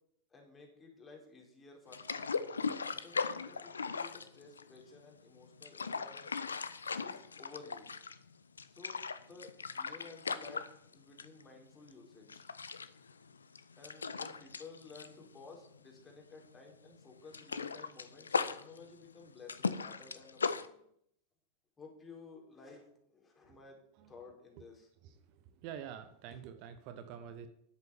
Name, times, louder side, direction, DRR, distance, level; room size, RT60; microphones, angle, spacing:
voice 1, 0.3-6.3 7.0-7.9 8.7-12.5 13.8-20.8 21.8-23.8 24.1-24.9 26.3-26.4, left 4 dB, 20° left, 0 dB, 4.4 m, -54 dB
sound 1, 1.9-5.0 5.4-8.3 8.6-11.4 11.7-11.9 12.3-16.1 16.3-16.6 16.9-20.7, left 5 dB, 75° left, 0.7 m, -38 dB
voice 2, 25.6-27.5, right 8 dB, 45° right, 10 dB, 1.0 m, -46 dB
11.0 x 8.1 x 7.2 m, 0.72 s
figure-of-eight pair, 90°, 0 cm